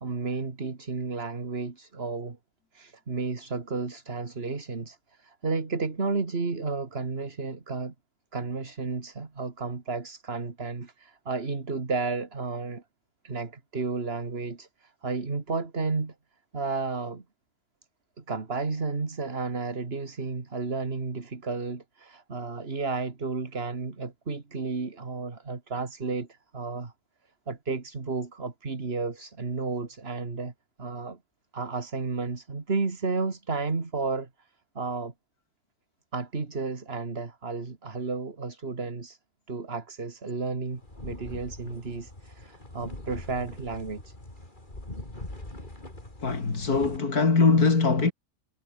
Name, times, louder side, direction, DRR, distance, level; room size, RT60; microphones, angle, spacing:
voice 1, 0.0-2.4 2.7-7.9 8.3-12.8 13.2-16.1 16.5-17.2 18.2-26.9 27.5-30.5 30.8-31.2 31.5-34.3 34.7-35.1 36.1-39.2 39.5-44.1, right 4 dB, 40° right, 2.5 m, -32 dB
sound 1, 40.7-47.0, left 1 dB, 30° left, 5.2 m, -42 dB
voice 2, 46.2-48.1, left 4 dB, 90° left, 3.6 m, -22 dB
omnidirectional pair, 1.6 m